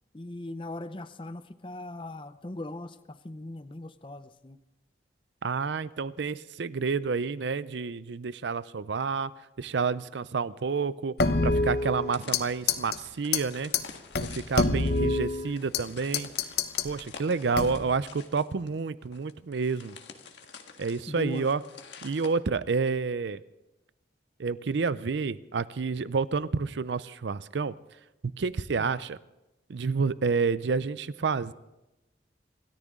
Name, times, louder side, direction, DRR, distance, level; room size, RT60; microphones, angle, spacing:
voice 1, 0.1-4.6 21.1-21.5 28.8-28.9, left 2 dB, 25° left, 12 dB, 0.6 m, -39 dB
voice 2, 5.4-9.3 9.6-11.2 11.4-13.7 14.2-16.3 16.8-20.0 20.8-21.6 22.0-23.4 24.4-27.7 28.4-29.2 29.7-31.5, right 5 dB, 75° right, 17 dB, 0.5 m, -29 dB
sound 1, 11.2-12.4 12.7-13.0 13.3-13.4 13.7-13.8 14.1-15.8 16.1-16.9 17.5-18.0, left 3 dB, 60° left, 0.8 m, -26 dB
sound 2, 12.1-22.3, left 5 dB, 75° left, 1.6 m, -49 dB
26.5 x 13.5 x 3.7 m, 0.96 s
head